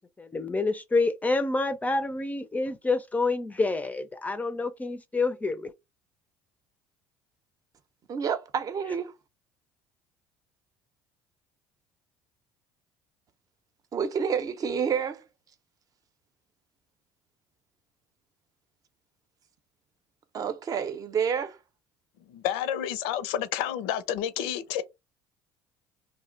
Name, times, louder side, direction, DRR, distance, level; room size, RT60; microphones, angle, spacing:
voice 1, 0.2-5.7, left 3 dB, 15° left, 0.4 m, -28 dB
voice 2, 8.1-9.1 13.9-15.2 20.3-21.6, right 7 dB, 45° right, 0.6 m, -29 dB
voice 3, 22.3-24.8, left 10 dB, 75° left, 0.5 m, -30 dB
2.6 x 2.0 x 3.8 m
hypercardioid pair, 75°, 9 cm